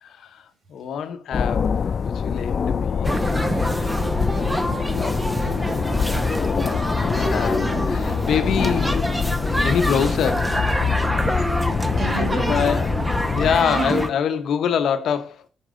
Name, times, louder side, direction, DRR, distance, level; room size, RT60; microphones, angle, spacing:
voice 1, 0.0-3.4 3.6-4.0 4.3-9.0 9.6-10.6 12.2-12.9 13.3-15.4, left 7 dB, 70° left, 0.9 m, -26 dB
sound 1, 1.3-13.6, left 6 dB, 50° left, 0.3 m, -25 dB
sound 2, 3.0-14.1, right 1 dB, 5° right, 0.8 m, -26 dB
voice 2, 11.0-12.8 13.6-14.0, right 5 dB, 50° right, 2.2 m, -32 dB
10.5 x 4.7 x 3.8 m
cardioid pair, 90°, 0 cm